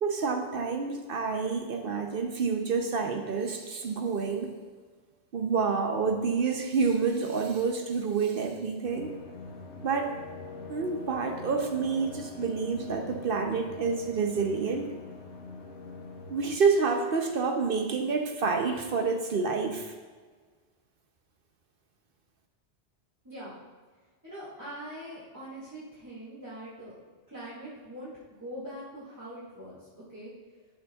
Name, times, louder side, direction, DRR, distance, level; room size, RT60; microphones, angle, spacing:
voice 1, 0.0-4.5 5.3-9.1 9.8-10.1 10.7-14.9 16.3-19.9, right 5 dB, 55° right, 4 dB, 0.8 m, -28 dB
sound 1, 8.8-16.6, left 3 dB, 80° left, 1.2 m, -43 dB
voice 2, 23.2-23.6 24.2-26.9 27.3-28.1 28.4-29.8 30.1-30.3, equal, 15° right, -11 dB, 1.9 m, -42 dB
11.5 x 6.8 x 2.3 m, 1.5 s
omnidirectional pair, 1.2 m